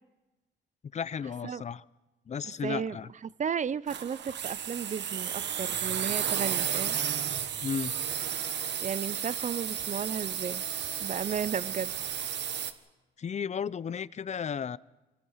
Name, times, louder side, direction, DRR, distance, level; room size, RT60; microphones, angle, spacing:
voice 1, 0.9-1.8 2.3-3.1 7.6-8.0 13.2-14.8, left 7 dB, 35° left, 20 dB, 0.6 m, -34 dB
voice 2, 2.4-3.0 3.2-7.0 8.8-10.6 11.0-11.9, right 7 dB, 40° right, 20 dB, 0.7 m, -34 dB
sound 1, 3.9-12.7, right 9 dB, 65° right, 1.4 m, -33 dB
27.0 x 17.5 x 5.7 m, 1.1 s
cardioid pair, 90°, 20 cm